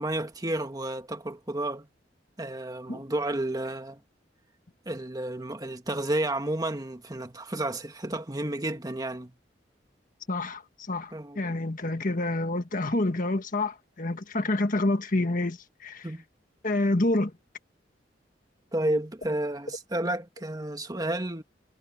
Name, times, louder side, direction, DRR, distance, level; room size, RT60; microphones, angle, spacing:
voice 1, 0.0-1.9 2.4-4.0 4.9-9.3 11.1-11.4 16.0-16.2 18.7-21.4, right 1 dB, 20° right, 1.8 m, -31 dB
voice 2, 10.3-16.1 16.6-17.3, left 2 dB, 50° left, 1.6 m, -28 dB
head